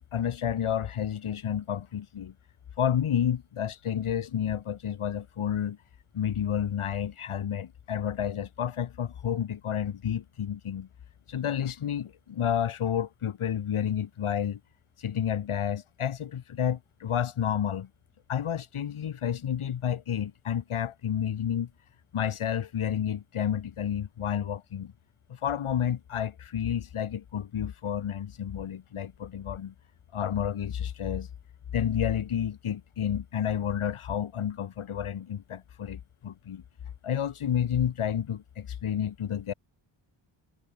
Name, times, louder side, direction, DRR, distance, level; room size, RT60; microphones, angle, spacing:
voice 1, 0.0-2.3 2.8-5.8 6.1-10.9 11.3-14.6 15.0-17.9 18.3-21.7 22.1-24.9 25.3-29.7 30.1-31.3 31.7-36.6 37.0-39.5, left 9 dB, 75° left, 6.6 m, -30 dB
wide cardioid pair, 160°, 50 cm